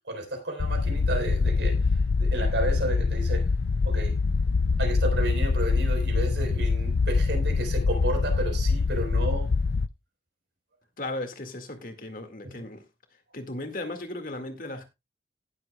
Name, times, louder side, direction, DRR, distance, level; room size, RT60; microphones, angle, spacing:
voice 1, 0.1-1.8 2.2-3.5 3.8-4.1 4.8-9.5, right 2 dB, 85° right, 4.4 m, -32 dB
sound 1, 0.6-9.9, left 4 dB, 70° left, 0.5 m, -24 dB
voice 2, 11.0-12.9 13.3-14.8, left 2 dB, 50° left, 2.1 m, -36 dB
18.0 x 7.7 x 2.3 m
head